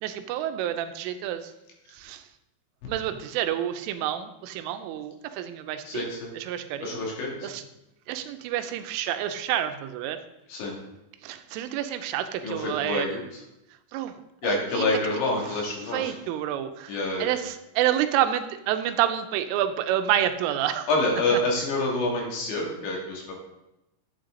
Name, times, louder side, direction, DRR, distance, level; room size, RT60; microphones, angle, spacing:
voice 1, 0.0-1.5 1.9-2.2 2.9-6.1 6.3-7.0 7.4-7.6 8.1-10.2 11.2-13.1 13.9-14.8 15.2-15.4 15.9-20.9 21.3-21.4, right 11 dB, 90° right, 9 dB, 3.3 m, -29 dB
voice 2, 5.9-6.3 6.8-7.4 10.5-10.7 12.4-13.2 14.4-16.1 16.9-17.3 20.9-23.3, left 2 dB, 70° left, -2 dB, 4.7 m, -27 dB
12.0 x 8.9 x 3.8 m, 0.91 s
omnidirectional pair, 5.5 m